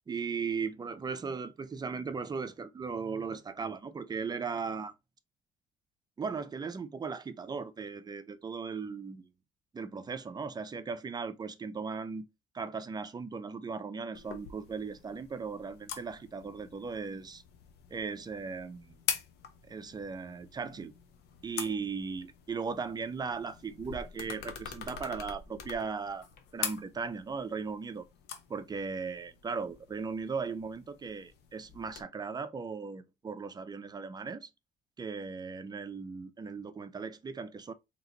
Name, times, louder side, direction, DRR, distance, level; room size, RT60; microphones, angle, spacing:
voice 1, 0.1-4.9 6.2-9.3 9.7-12.3 12.5-17.4 17.9-19.0 19.7-20.9 21.4-26.3 26.5-28.1 28.5-34.5 35.0-37.7, right 5 dB, 25° right, 0.5 m, -37 dB
sound 1, 14.1-32.0, left 7 dB, 80° left, 0.9 m, -44 dB
3.9 x 3.0 x 2.8 m
cardioid pair, 110°, 17 cm